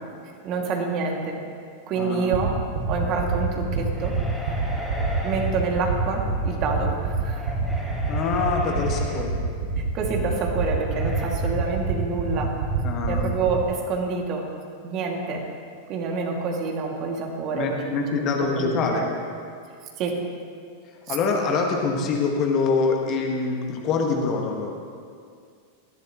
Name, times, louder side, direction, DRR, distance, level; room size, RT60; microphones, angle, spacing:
voice 1, 0.2-1.4 1.9-2.5 2.9-4.2 5.2-7.5 9.9-12.6 13.1-14.5 14.8-15.5 15.9-19.1 20.0-20.2 21.1-21.2, right 4 dB, 40° right, 0 dB, 2.5 m, -27 dB
voice 2, 2.0-2.3 8.1-9.4 12.8-13.3 17.5-19.1 21.1-24.7, left 4 dB, 35° left, 1 dB, 1.8 m, -25 dB
sound 1, 2.3-13.6, right 6 dB, 60° right, 2.1 m, -25 dB
sound 2, 3.9-5.6 7.1-9.3 10.8-11.3, equal, ahead, 4.0 m, -36 dB
19.0 x 15.5 x 3.2 m, 2.2 s
figure-of-eight pair, 90°, 0 cm